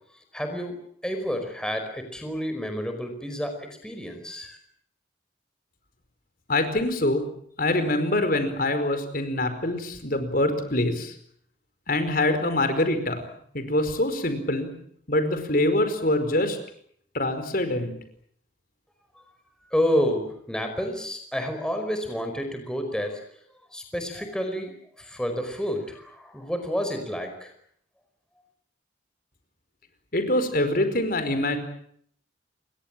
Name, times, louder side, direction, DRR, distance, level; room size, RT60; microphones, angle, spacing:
voice 1, 0.3-4.6 19.6-23.2 23.7-24.7 25.0-27.5, equal, 5° left, 5 dB, 4.9 m, -29 dB
voice 2, 6.5-7.2 7.6-11.1 11.9-13.3 13.5-14.7 15.1-16.6 17.1-17.9 30.1-31.6, left 1 dB, 50° left, 9 dB, 4.9 m, -24 dB
29.0 x 22.5 x 7.6 m, 0.66 s
head